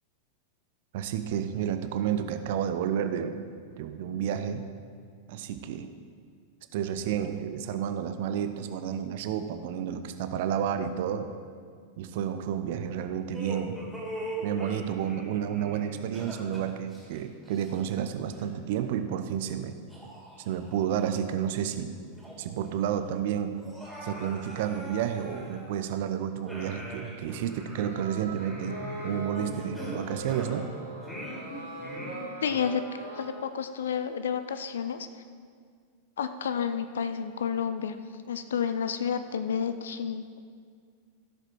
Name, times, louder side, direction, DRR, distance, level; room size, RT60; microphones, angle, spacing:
voice 1, 0.9-3.4 3.8-4.7 5.3-5.9 6.7-11.3 12.0-13.8 14.4-19.8 20.4-21.9 22.4-23.6 24.0-28.8 29.0-30.7, right 9 dB, 50° right, 9 dB, 0.7 m, -31 dB
sound 1, 13.3-18.0 18.3-18.5 19.2-19.3 19.9-21.2 21.6-21.7 22.1-22.7 22.9-23.0 23.5-26.0 26.5-30.7 31.0-32.6, equal, 5° left, 3.2 m, -42 dB
sound 2, 27.9-33.3, right 2 dB, 75° right, 2.9 m, -40 dB
voice 2, 32.4-32.8 33.1-35.1 36.2-38.0 38.3-40.4, left 7 dB, 65° left, 10 dB, 0.5 m, -30 dB
16.0 x 6.7 x 4.6 m, 2.1 s
figure-of-eight pair, 90°, 0 cm